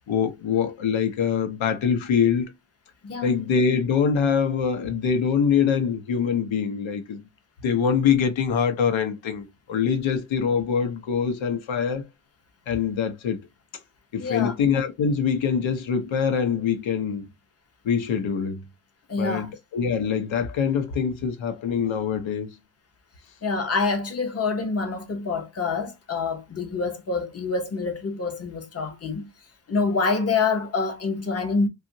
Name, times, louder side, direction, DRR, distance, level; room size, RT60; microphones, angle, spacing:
voice 1, 0.1-2.5 3.2-7.2 7.6-12.0 12.7-13.4 14.1-17.3 17.8-18.6 19.2-22.5, left 7 dB, 70° left, 0.8 m, -24 dB
voice 2, 14.2-14.5 19.1-19.5 23.4-29.3 29.7-31.7, left 4 dB, 30° left, 0.7 m, -26 dB
2.8 x 2.4 x 2.6 m
wide cardioid pair, 130°, 48 cm